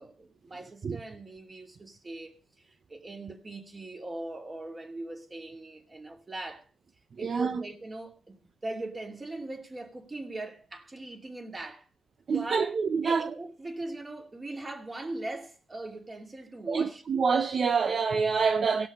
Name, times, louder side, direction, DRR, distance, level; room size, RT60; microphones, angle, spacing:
voice 1, 0.0-2.3 2.9-6.6 7.2-11.9 12.3-12.8 13.0-17.0, right 2 dB, 25° right, 2.5 m, -40 dB
voice 2, 7.2-7.6 12.3-13.3 16.7-18.9, right 5 dB, 50° right, 0.6 m, -26 dB
18.0 x 6.1 x 5.4 m
cardioid pair, 100°, 0 cm